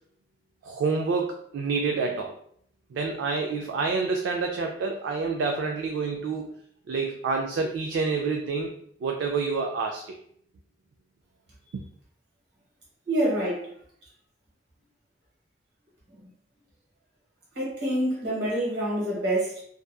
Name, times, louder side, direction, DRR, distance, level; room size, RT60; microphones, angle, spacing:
voice 1, 0.6-2.3 2.9-6.6 6.9-8.7 9.0-10.1 11.7-11.8, right 4 dB, 85° right, 3 dB, 0.3 m, -28 dB
voice 2, 13.1-13.7 16.1-16.3 17.5-19.6, right 1 dB, 60° right, -4 dB, 1.1 m, -27 dB
2.7 x 2.3 x 2.2 m, 0.65 s
head